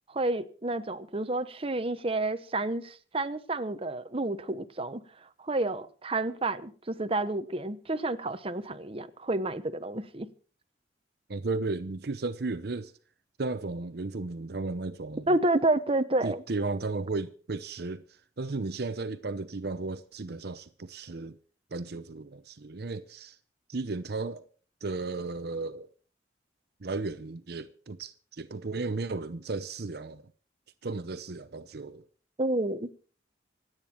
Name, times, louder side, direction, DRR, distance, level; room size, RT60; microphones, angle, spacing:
voice 1, 0.1-10.3 15.3-16.4 32.4-32.9, right 2 dB, 35° right, 1.0 m, -30 dB
voice 2, 11.3-12.9 13.4-15.3 16.2-18.0 18.4-21.4 21.7-23.4 23.7-24.5 24.8-25.9 26.8-30.3 30.8-32.1, right 3 dB, 65° right, 0.7 m, -34 dB
26.5 x 9.0 x 4.4 m
head